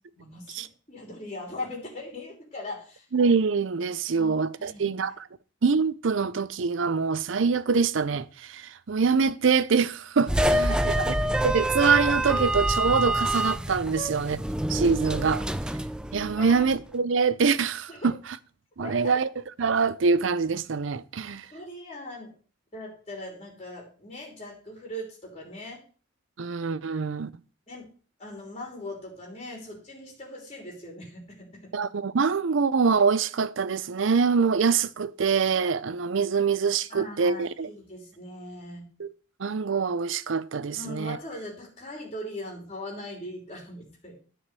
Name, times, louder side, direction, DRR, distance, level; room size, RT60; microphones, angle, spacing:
voice 1, 0.1-3.0 4.1-4.3 4.6-4.9 10.7-11.0 13.9-14.1 16.4-16.6 17.9-18.0 18.8-19.1 21.5-22.3 22.7-25.8 27.7-27.9 28.2-31.7 36.9-38.9 40.7-44.1, left 1 dB, 30° left, 3.3 m, -40 dB
voice 2, 3.1-5.3 5.6-11.1 11.4-15.4 16.1-18.2 18.8-19.3 19.6-21.5 26.4-27.3 31.7-37.7 39.0-39.1 39.4-41.2, right 5 dB, 70° right, 0.5 m, -25 dB
sound 1, 10.3-16.8, right 1 dB, 5° right, 0.3 m, -27 dB
10.0 x 5.0 x 6.8 m
head